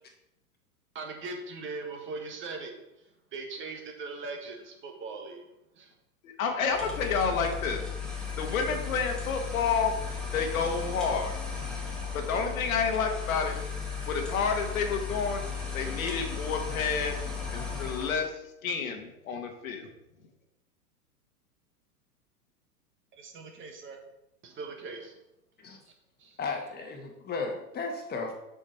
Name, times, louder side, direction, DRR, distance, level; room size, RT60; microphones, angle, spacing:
voice 1, 0.9-2.7 3.3-5.4 5.7-5.9 23.1-24.0 24.4-25.1 25.8-25.9 26.2-26.4, right 3 dB, 25° right, 3 dB, 1.5 m, -40 dB
voice 2, 6.2-7.8 8.4-9.9 10.3-11.4 12.1-13.5 14.1-15.4 15.7-17.1 17.5-18.3 18.6-19.9, left 5 dB, 60° left, 4 dB, 1.6 m, -29 dB
sound 1, 6.7-18.2, left 5 dB, ahead, 1.8 m, -36 dB
voice 3, 26.4-28.3, left 4 dB, 20° left, 2 dB, 1.7 m, -34 dB
7.4 x 6.3 x 4.5 m, 0.89 s
hypercardioid pair, 110°, 46 cm